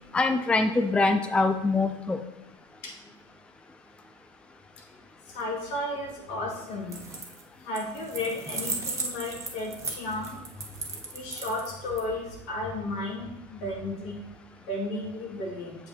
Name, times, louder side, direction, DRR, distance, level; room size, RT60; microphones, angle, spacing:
voice 1, 0.1-2.2, left 3 dB, 5° left, 7 dB, 0.4 m, -24 dB
voice 2, 5.3-7.1 7.6-10.4 11.1-14.2 14.6-15.8, left 1 dB, 70° left, -2 dB, 2.2 m, -33 dB
sound 1, 6.8-7.4 7.7-12.0, right 3 dB, 20° right, 1.4 m, -35 dB
7.6 x 7.1 x 2.8 m, 1.0 s
supercardioid pair, 100°, 17 cm